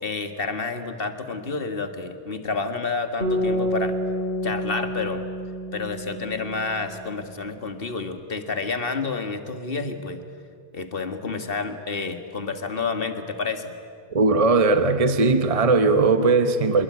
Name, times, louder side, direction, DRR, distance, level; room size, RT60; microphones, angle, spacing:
voice 1, 0.0-4.0 4.4-5.2 5.7-10.2 10.7-13.7, left 4 dB, 60° left, 7 dB, 2.0 m, -29 dB
sound 1, 3.2-7.4, equal, 75° right, 5.1 m, -29 dB
voice 2, 14.1-16.8, right 3 dB, 35° right, 9 dB, 1.1 m, -19 dB
26.0 x 22.0 x 9.7 m, 2.3 s
omnidirectional pair, 1.1 m